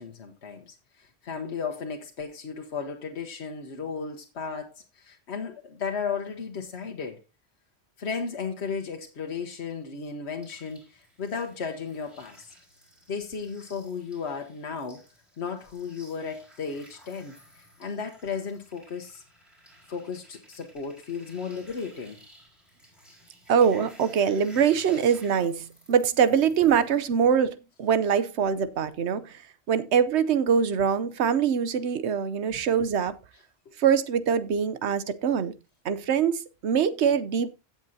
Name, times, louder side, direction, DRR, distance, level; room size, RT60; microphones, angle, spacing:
voice 1, 0.0-7.2 8.0-12.5 13.1-15.0 15.4-19.2 19.9-22.2 32.5-32.6, left 5 dB, 75° left, 1.5 m, -35 dB
sound 1, 10.4-27.0, equal, ahead, 4.2 m, -55 dB
voice 2, 23.5-29.4 29.7-33.2 33.8-35.5 35.8-37.5, right 7 dB, 85° right, 1.1 m, -23 dB
16.5 x 7.1 x 2.7 m
omnidirectional pair, 1.1 m